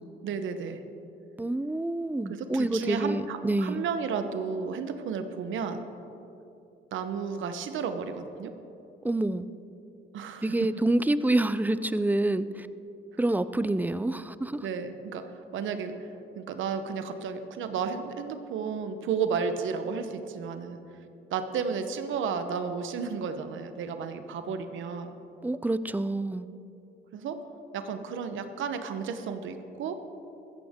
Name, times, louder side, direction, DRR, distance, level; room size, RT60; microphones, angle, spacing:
voice 1, 0.2-0.8 2.3-5.8 6.9-8.5 10.1-10.5 14.6-20.8 21.3-25.1 27.1-27.4 27.7-30.0, right 6 dB, 75° right, 9 dB, 1.0 m, -33 dB
voice 2, 1.4-3.8 9.0-9.5 10.4-12.7 13.2-14.7 25.4-26.5, right 2 dB, 10° right, 14 dB, 0.4 m, -27 dB
15.0 x 14.5 x 3.7 m, 2.8 s
cardioid pair, 90°, 20 cm